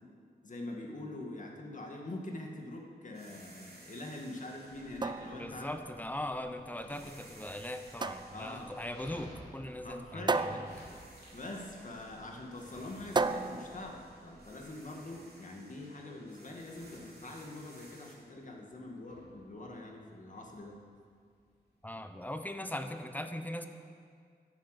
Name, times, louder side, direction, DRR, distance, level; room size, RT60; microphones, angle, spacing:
voice 1, 0.4-5.7 8.3-8.7 9.8-11.0 11.3-20.8, left 2 dB, 50° left, 1 dB, 2.1 m, -44 dB
sound 1, 3.1-6.4 6.9-10.3 10.6-18.1, right 2 dB, 65° right, 3.5 m, -58 dB
Dog, 3.9-22.5, left 1 dB, 75° left, 3.5 m, -57 dB
sound 2, 4.7-14.7, right 3 dB, 25° right, 0.4 m, -37 dB
voice 2, 5.3-10.7 21.8-23.7, left 1 dB, 10° left, 8 dB, 0.9 m, -40 dB
11.5 x 10.5 x 8.2 m, 2.1 s
wide cardioid pair, 115°, 17 cm